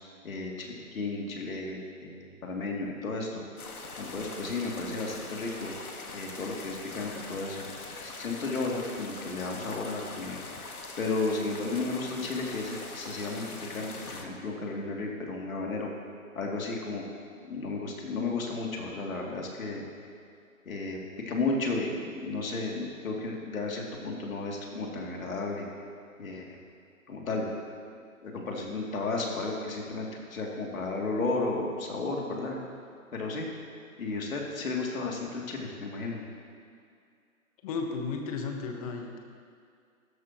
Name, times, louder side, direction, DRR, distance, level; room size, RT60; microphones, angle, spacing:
voice 1, 0.2-3.4 4.0-5.7 6.1-7.6 8.0-10.4 11.0-15.9 16.3-17.0 17.5-19.8 20.6-21.0 21.3-25.6 26.2-26.6 27.1-27.5 28.2-32.6 33.1-33.5 34.0-36.2, left 3 dB, 70° left, -1 dB, 2.9 m, -33 dB
sound 1, 3.6-14.2, left 3 dB, 85° left, 1.8 m, -42 dB
voice 2, 37.6-39.2, left 4 dB, 25° left, 3 dB, 1.2 m, -34 dB
16.0 x 13.5 x 3.0 m, 2.3 s
hypercardioid pair, 145°, 43 cm